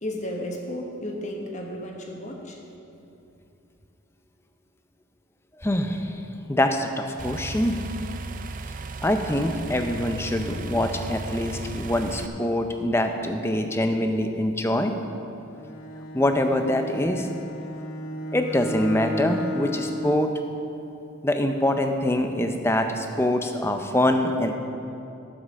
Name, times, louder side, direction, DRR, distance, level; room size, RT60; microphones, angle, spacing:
voice 1, 0.0-2.6, left 1 dB, 35° left, 1 dB, 1.2 m, -33 dB
voice 2, 5.6-6.2 6.5-7.8 9.0-14.9 16.1-17.3 18.3-20.3 21.2-24.5, left 1 dB, 10° left, 6 dB, 0.5 m, -24 dB
sound 1, 7.2-12.3, right 2 dB, 40° right, 0.4 m, -35 dB
Bowed string instrument, 15.5-20.3, left 1 dB, 80° left, 0.9 m, -34 dB
9.9 x 7.4 x 6.4 m, 2.8 s
head